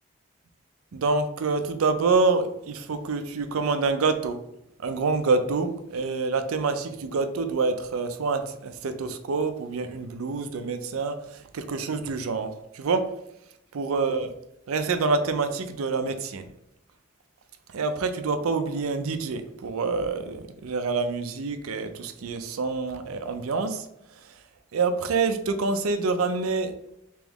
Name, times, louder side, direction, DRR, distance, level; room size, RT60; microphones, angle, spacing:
voice 1, 0.9-4.4 4.8-13.1 13.7-14.3 14.7-16.5 17.7-23.9 24.2-24.4 24.7-26.7, right 4 dB, 80° right, 8 dB, 0.4 m, -27 dB
3.5 x 3.0 x 3.5 m, 0.81 s
head